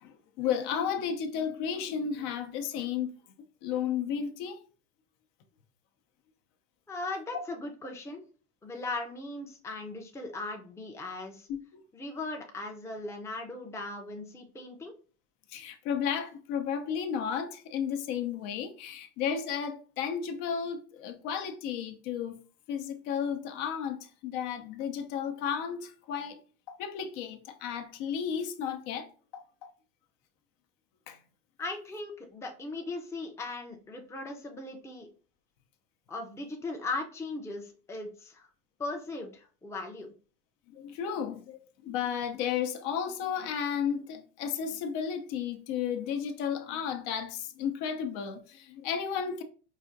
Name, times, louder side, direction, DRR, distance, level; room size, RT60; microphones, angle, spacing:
voice 1, 0.0-3.1 3.6-4.6 11.5-11.8 15.5-22.4 22.7-26.4 26.7-29.1 29.3-29.7 31.1-31.2 40.7-49.4, left 7 dB, 65° left, 0.7 m, -33 dB
voice 2, 6.9-8.2 8.6-11.5 11.9-14.9 31.6-35.1 36.1-38.5 38.8-40.1, left 2 dB, 10° left, 0.5 m, -38 dB
4.9 x 2.4 x 2.6 m
supercardioid pair, 110°, 34 cm